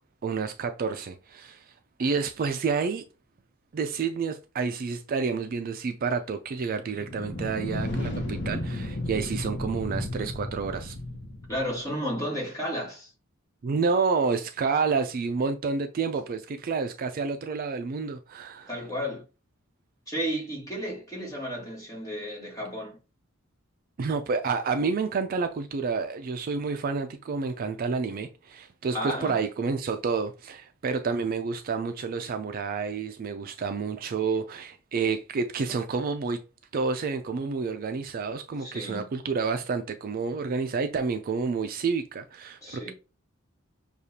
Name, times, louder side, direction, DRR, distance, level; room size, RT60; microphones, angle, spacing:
voice 1, 0.2-1.6 2.0-3.0 3.7-10.9 13.6-18.7 24.0-36.4 36.7-42.9, right 5 dB, 45° right, 0.4 m, -29 dB
sound 1, 6.9-11.8, left 1 dB, 55° left, 0.9 m, -33 dB
voice 2, 11.5-13.1 18.7-19.2 20.1-23.0 28.9-29.4 38.6-39.0 42.6-42.9, equal, 15° left, 1.6 m, -33 dB
6.5 x 2.4 x 2.8 m
head